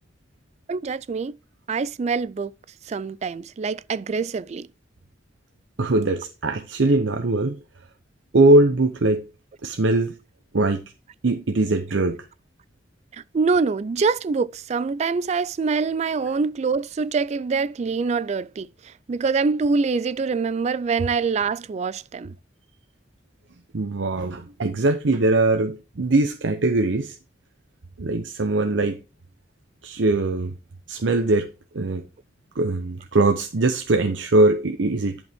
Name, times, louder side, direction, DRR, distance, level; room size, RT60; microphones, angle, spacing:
voice 1, 0.7-1.4 1.7-2.5 2.9-4.7 13.3-18.7 19.1-22.3, right 4 dB, 35° right, 0.3 m, -24 dB
voice 2, 5.8-7.6 8.3-9.2 9.6-10.1 10.5-10.8 11.2-12.3 23.7-27.2 28.0-29.0 29.8-30.5 30.9-31.5 31.7-32.0 32.6-35.2, right 2 dB, 75° right, 0.7 m, -21 dB
11.0 x 5.2 x 3.5 m
head